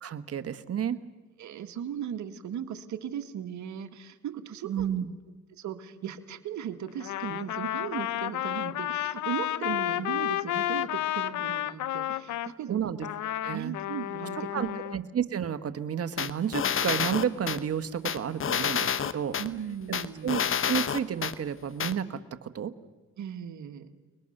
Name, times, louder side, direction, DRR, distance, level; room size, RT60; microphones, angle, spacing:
voice 1, 0.0-1.0 4.6-5.1 12.7-13.1 13.4-13.7 14.5-19.4 20.2-20.4 20.7-22.7, right 8 dB, 50° right, 10 dB, 1.5 m, -31 dB
voice 2, 1.4-4.9 5.6-12.9 13.5-14.8 19.4-20.3 23.2-23.9, right 9 dB, 70° right, 7 dB, 2.0 m, -37 dB
Trumpet, 7.0-12.5 13.0-15.0, left 13 dB, 75° left, 0.8 m, -31 dB
sound 1, 16.2-17.6 18.0-19.5 19.9-21.3 21.8-21.9, left 8 dB, 45° left, 1.1 m, -28 dB
29.5 x 21.0 x 6.7 m, 1.2 s
cardioid pair, 90°, 30 cm